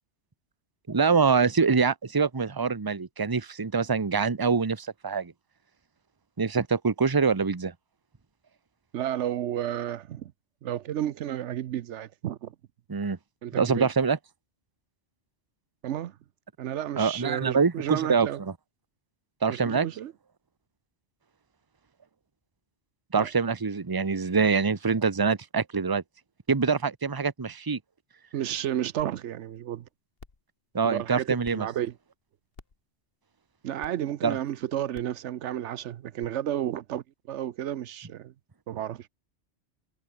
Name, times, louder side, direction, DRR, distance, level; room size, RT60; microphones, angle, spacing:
voice 1, 0.9-5.3 6.4-7.7 12.9-13.2 13.6-14.2 17.0-18.5 19.4-19.9 23.1-26.0 26.5-27.8 30.7-31.7 34.2-34.4, right 5 dB, 20° right, 0.9 m, -25 dB
voice 2, 8.9-10.3 10.6-12.5 13.4-13.9 15.8-16.1 16.6-18.4 19.5-20.1 23.2-23.3 28.3-29.8 30.8-31.9 33.6-38.3 38.7-39.1, right 11 dB, 80° right, 1.0 m, -32 dB
sound 1, 29.0-29.1 29.6-29.7 30.2-30.4 31.4-31.5 32.5-32.8 33.8-33.9 34.9-35.2 36.2-36.3, left 4 dB, 55° left, 2.1 m, -48 dB
omnidirectional pair, 1.2 m